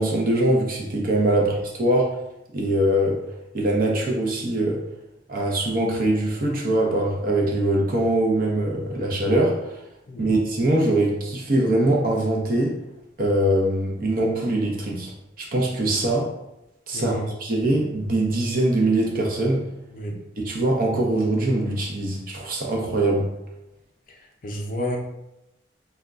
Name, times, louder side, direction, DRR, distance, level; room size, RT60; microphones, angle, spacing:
voice 1, 0.0-2.1 2.5-3.2 3.5-4.8 5.3-9.8 10.2-12.7 13.2-15.1 15.4-16.3 16.9-19.6 20.4-23.3, right 1 dB, 50° right, -1 dB, 0.6 m, -22 dB
voice 2, 16.9-17.3 19.9-20.2 24.1-25.0, equal, 45° left, 0 dB, 0.5 m, -31 dB
2.3 x 2.1 x 3.6 m, 0.90 s
head